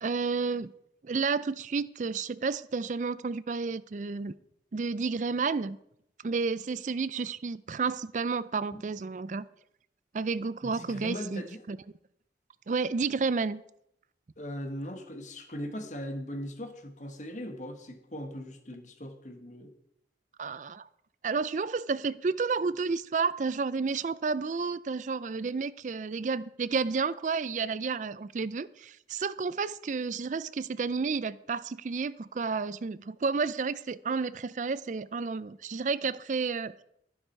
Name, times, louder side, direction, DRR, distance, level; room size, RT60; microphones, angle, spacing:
voice 1, 0.0-0.7 1.0-4.3 4.7-5.8 6.2-9.5 10.1-11.8 12.7-13.6 20.4-20.9 21.2-36.7, right 4 dB, 45° right, 0.4 m, -31 dB
voice 2, 10.6-11.6 14.4-19.7, equal, 45° left, 1.4 m, -39 dB
12.5 x 11.5 x 4.5 m
head